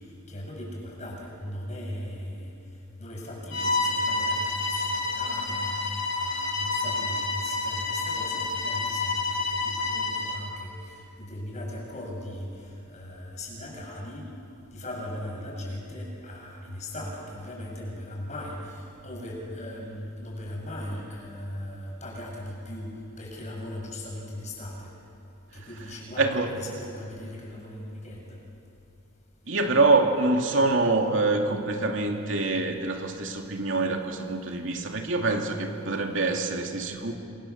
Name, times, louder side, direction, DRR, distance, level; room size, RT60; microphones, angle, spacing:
voice 1, 0.3-2.5 3.0-14.3 14.7-22.9 23.2-24.9 25.5-28.4, left 1 dB, 35° left, -1 dB, 7.7 m, -38 dB
Bowed string instrument, 3.5-10.5, left 3 dB, 60° left, 4.3 m, -29 dB
voice 2, 26.2-26.5 29.5-37.1, right 3 dB, 65° right, 2 dB, 2.7 m, -25 dB
29.0 x 25.5 x 7.4 m, 2.7 s
head